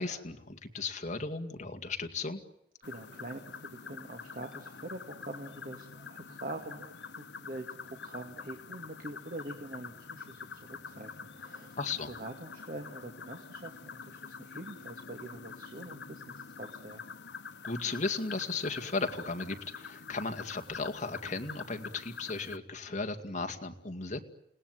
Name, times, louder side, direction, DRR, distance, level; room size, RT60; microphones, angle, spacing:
voice 1, 0.0-2.4 11.8-12.1 17.6-24.2, left 3 dB, 45° left, 7 dB, 2.4 m, -35 dB
sound 1, 2.8-22.6, left 5 dB, 80° left, 1.2 m, -46 dB
voice 2, 2.8-11.8 12.1-13.7 14.0-17.0, right 1 dB, 50° right, 4 dB, 2.3 m, -44 dB
29.0 x 19.0 x 9.4 m, 0.79 s
head